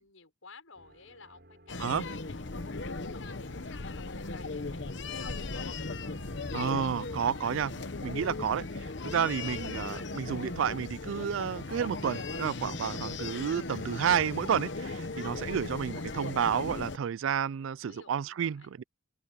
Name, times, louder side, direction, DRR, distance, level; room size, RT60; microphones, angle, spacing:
voice 1, 0.0-5.4 17.8-18.9, left 4 dB, 80° left, 6.3 m, -53 dB
sound 1, 0.7-12.6, equal, 50° right, 6.6 m, -55 dB
sound 2, 1.7-17.0, left 3 dB, 55° left, 1.0 m, -37 dB
voice 2, 6.5-7.7 8.0-18.8, right 8 dB, 70° right, 0.3 m, -31 dB
head